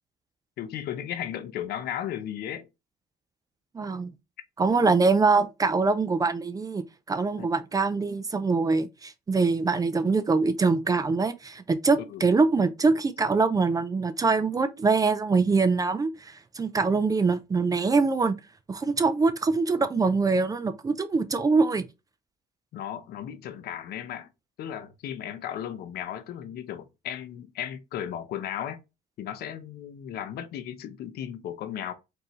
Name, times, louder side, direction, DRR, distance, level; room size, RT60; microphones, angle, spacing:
voice 1, 0.6-2.7 7.4-7.5 12.1-12.2 22.7-24.3 24.6-28.8 29.2-31.9, left 10 dB, 70° left, 0.7 m, -35 dB
voice 2, 3.7-4.1 4.6-18.3 18.7-21.8, right 4 dB, 20° right, 0.4 m, -24 dB
4.5 x 2.6 x 3.0 m
cardioid pair, 110°, 17 cm